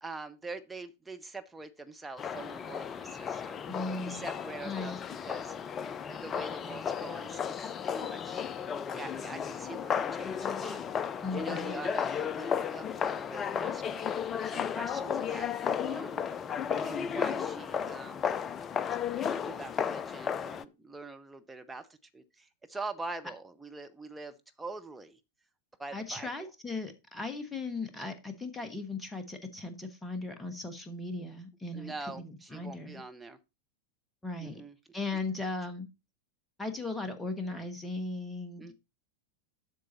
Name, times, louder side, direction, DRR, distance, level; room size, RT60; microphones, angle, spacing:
voice 1, 0.0-3.6 4.0-5.6 6.1-8.5 8.9-10.8 11.3-14.1 14.4-16.2 16.8-18.3 19.2-21.9 22.1-25.2 25.8-26.5 31.7-33.4 34.4-34.7 38.6-38.7, right 3 dB, 10° right, 7 dB, 0.8 m, -44 dB
sound 1, 2.2-20.6, left 7 dB, 25° left, 0.4 m, -34 dB
voice 2, 3.7-4.3 4.6-5.0 11.2-11.7 25.9-33.0 34.2-34.6 34.9-35.9 36.6-38.7, left 3 dB, 10° left, 7 dB, 1.4 m, -37 dB
7.7 x 6.5 x 4.1 m, 0.26 s
figure-of-eight pair, 90°, 0 cm